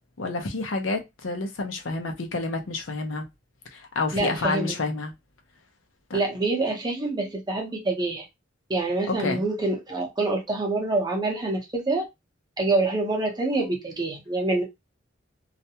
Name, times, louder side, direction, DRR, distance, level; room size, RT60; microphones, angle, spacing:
voice 1, 0.2-3.2 3.7-5.1 6.1-6.2 9.2-9.4, left 3 dB, 80° left, 0.6 m, -29 dB
voice 2, 4.1-4.8 6.1-8.2 8.7-12.0 12.6-14.6, right 2 dB, 20° right, 0.7 m, -26 dB
2.4 x 2.2 x 2.8 m
head